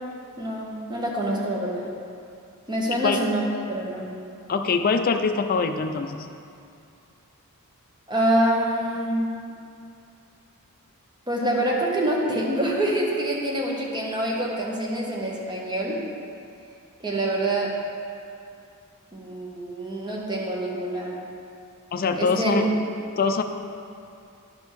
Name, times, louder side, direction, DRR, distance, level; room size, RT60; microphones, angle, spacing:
voice 1, 0.4-1.8 2.7-3.4 3.7-4.1 8.1-9.3 11.3-16.0 17.0-17.7 19.1-21.2 22.2-22.7, right 1 dB, 20° right, -3 dB, 1.1 m, -26 dB
voice 2, 4.5-6.3 21.9-22.7 23.2-23.4, left 4 dB, 40° left, 6 dB, 0.4 m, -23 dB
11.5 x 5.2 x 3.1 m, 2.5 s
head